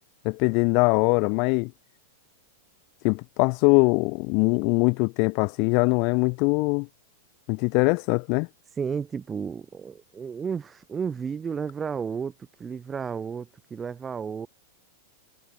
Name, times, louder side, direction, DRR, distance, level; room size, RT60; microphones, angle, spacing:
voice 1, 0.2-1.7 3.0-6.9 7.5-8.5, left 34 dB, 50° left, 0.5 m, -22 dB
voice 2, 8.8-12.3 12.6-14.5, right 6 dB, 20° right, 2.9 m, -32 dB
hypercardioid pair, 125°, 0 cm